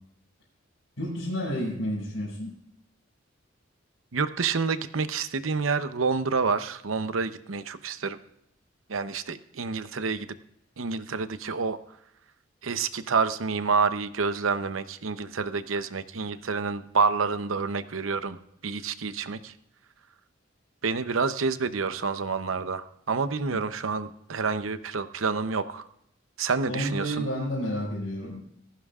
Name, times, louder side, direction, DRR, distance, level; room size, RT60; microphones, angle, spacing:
voice 1, 1.0-2.5 23.5-23.6 26.7-28.5, equal, 85° left, -7 dB, 5.7 m, -30 dB
voice 2, 4.1-8.2 8.9-10.3 10.8-11.8 12.6-18.4 18.6-19.5 20.8-25.8 26.4-27.3, right 4 dB, 90° right, 11 dB, 0.8 m, -28 dB
18.5 x 14.5 x 2.4 m, 0.75 s
head